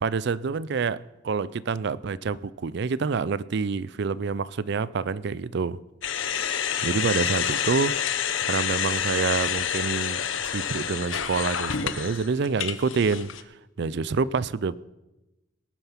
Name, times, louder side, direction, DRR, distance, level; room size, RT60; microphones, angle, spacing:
voice 1, 0.0-5.8 6.8-7.9 8.4-13.3 13.8-14.8, right 5 dB, 60° right, 0.4 m, -27 dB
sound 1, 6.0-13.4, left 8 dB, 85° left, 0.9 m, -28 dB
19.0 x 9.2 x 5.8 m
head